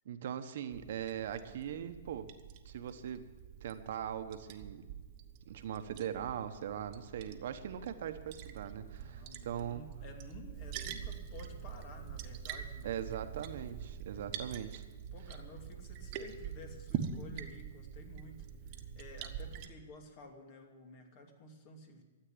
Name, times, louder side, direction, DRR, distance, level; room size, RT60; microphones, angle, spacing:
voice 1, 0.0-2.3 2.6-3.3 3.6-4.8 5.5-9.9 12.8-14.8, right 9 dB, 65° right, 9 dB, 1.1 m, -40 dB
Liquid, 0.7-19.7, right 8 dB, 40° right, 1.2 m, -45 dB
voice 2, 9.0-13.0 14.1-14.4 15.1-22.0, left 2 dB, 45° left, 3 dB, 2.6 m, -53 dB
13.5 x 8.1 x 9.7 m, 1.3 s
hypercardioid pair, 135°, 0 cm